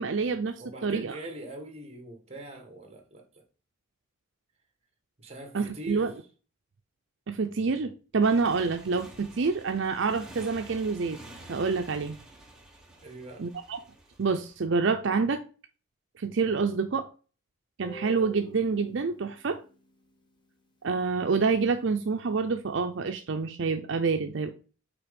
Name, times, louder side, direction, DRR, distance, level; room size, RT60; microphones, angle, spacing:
voice 1, 0.0-1.2 5.5-6.1 7.3-11.2 11.5-12.2 13.4-13.8 14.2-15.4 16.2-17.1 17.8-19.6 20.8-24.5, right 4 dB, 65° right, 0.5 m, -27 dB
voice 2, 0.6-3.4 5.2-6.1 13.0-13.4, right 2 dB, 30° right, 1.4 m, -42 dB
Motorcycle, 8.2-14.6, right 1 dB, 5° right, 1.1 m, -49 dB
Guitar, 17.8-20.8, equal, 20° left, 1.2 m, -48 dB
5.9 x 4.0 x 5.1 m
head